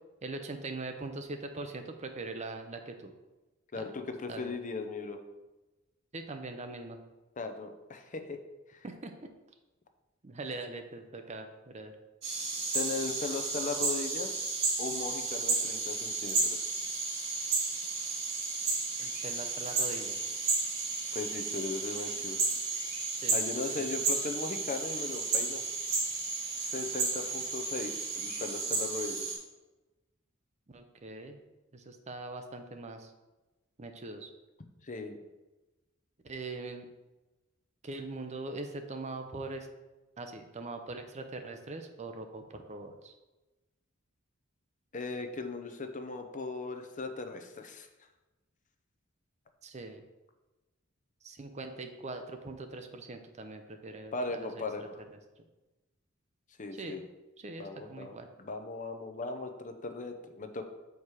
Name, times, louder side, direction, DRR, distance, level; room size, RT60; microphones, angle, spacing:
voice 1, 0.2-3.1 3.7-3.9 4.3-4.5 6.1-7.0 8.8-9.3 10.2-11.9 19.0-20.3 23.2-23.4 23.8-23.9 30.7-31.4 31.7-33.1 33.8-34.3 36.2-36.9 37.8-39.7 40.2-43.2 49.6-50.0 51.2-55.2 56.7-57.1 57.4-58.3, right 2 dB, 35° right, 6 dB, 0.7 m, -42 dB
voice 2, 3.7-5.2 7.4-8.4 8.7-8.8 12.7-14.5 14.8-16.7 21.1-22.5 23.3-25.6 26.7-29.3 34.8-35.2 44.9-47.9 54.1-54.9 56.6-57.0 57.6-58.1 58.4-60.6, left 3 dB, 40° left, 7 dB, 0.7 m, -38 dB
sound 1, 12.2-29.4, right 3 dB, 55° right, 2.6 m, -33 dB
7.1 x 4.7 x 4.8 m, 1.1 s
head